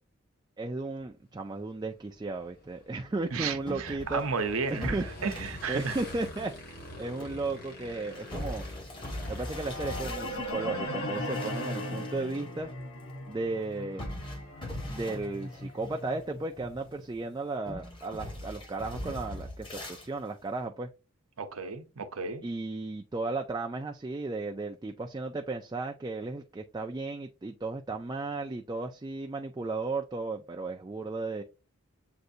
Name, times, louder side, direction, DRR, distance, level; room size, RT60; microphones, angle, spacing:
voice 1, 0.6-4.2 4.7-5.0 5.7-8.7 9.3-12.7 13.3-14.1 14.9-20.9 22.4-31.4, right 3 dB, 20° right, 0.3 m, -35 dB
Motorcycle / Engine, 1.0-10.7, left 1 dB, 45° left, 1.5 m, -48 dB
voice 2, 3.3-6.0 21.4-22.5, right 4 dB, 90° right, 0.8 m, -33 dB
sound 1, 3.7-10.6 11.1-12.4 12.7-12.8 14.0-16.2 16.6-17.1 17.7-20.1, left 1 dB, 25° left, 1.0 m, -41 dB
sound 2, 9.2-17.3, left 1 dB, 75° left, 1.0 m, -38 dB
7.7 x 2.6 x 2.6 m
head